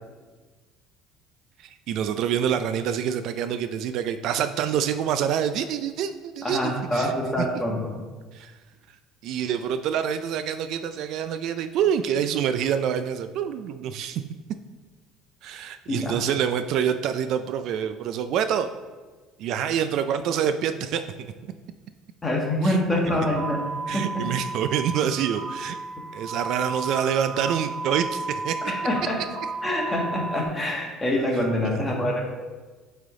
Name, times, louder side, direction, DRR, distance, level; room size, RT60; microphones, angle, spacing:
voice 1, 1.6-7.1 7.4-7.5 8.3-8.5 9.2-14.2 15.4-18.7 19.4-21.0 21.4-21.5 22.6-22.8 23.9-25.8 26.1-28.6 31.6-31.8, right 8 dB, 60° right, 10 dB, 0.3 m, -26 dB
voice 2, 6.4-7.9 15.9-16.1 22.2-23.6 23.9-24.2 28.7-29.1 29.6-32.2, left 1 dB, 15° left, -2 dB, 1.4 m, -25 dB
sound 1, 23.1-30.4, right 3 dB, 25° right, 2.0 m, -33 dB
8.0 x 3.4 x 3.8 m, 1.3 s
cardioid pair, 125°, 0 cm